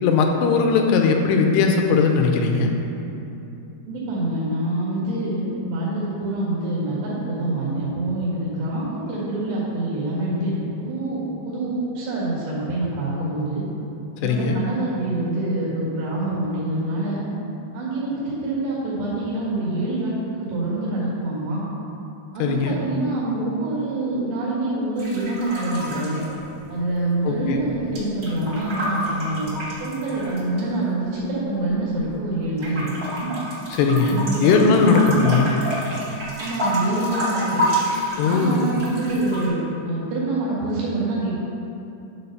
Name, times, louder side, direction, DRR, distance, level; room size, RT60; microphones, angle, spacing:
voice 1, 0.0-2.7 14.2-14.6 22.4-22.8 27.2-27.6 33.7-35.5 38.2-38.7, left 4 dB, 85° left, 3 dB, 2.7 m, -19 dB
voice 2, 3.9-13.6 14.2-17.2 17.7-21.6 22.3-26.2 26.7-29.5 29.8-32.9 33.2-33.3 34.0-35.2 36.4-37.6 38.2-41.3, right 2 dB, 85° right, -8 dB, 4.0 m, -26 dB
sound 1, 24.9-27.0 27.3-30.6 31.2-32.2 32.6-39.5, equal, 65° right, 0.9 m, -29 dB
11.0 x 4.0 x 5.7 m, 2.9 s
omnidirectional pair, 4.8 m